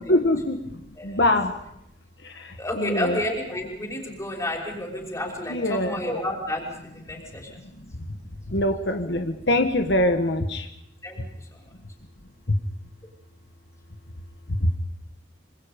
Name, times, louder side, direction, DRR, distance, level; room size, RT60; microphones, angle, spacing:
voice 1, 0.1-0.6 1.0-1.5 2.4-3.2 5.5-6.0 8.5-10.7, left 1 dB, 65° left, 5 dB, 1.6 m, -23 dB
voice 2, 2.6-7.5 11.0-11.6, left 1 dB, 15° left, 0 dB, 5.9 m, -31 dB
26.5 x 25.5 x 5.3 m, 0.79 s
head